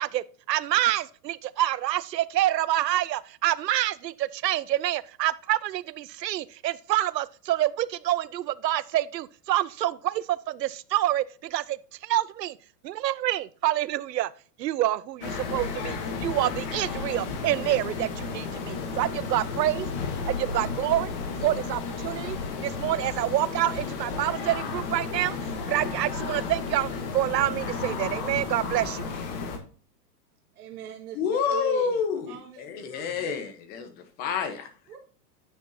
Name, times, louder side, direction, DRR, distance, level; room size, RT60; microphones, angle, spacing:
voice 1, 0.0-12.6 12.8-14.3 14.6-19.9 20.3-21.1 21.4-22.4 22.6-25.4 25.7-29.1, right 14 dB, 80° right, 0.7 m, -27 dB
sound 1, 15.2-29.6, left 4 dB, 35° left, 1.6 m, -33 dB
voice 2, 30.5-32.6 32.9-33.4 34.9-35.0, right 10 dB, 65° right, 1.8 m, -39 dB
voice 3, 31.1-34.7, left 6 dB, 20° left, 1.0 m, -29 dB
9.9 x 6.3 x 2.7 m
hypercardioid pair, 160°, 49 cm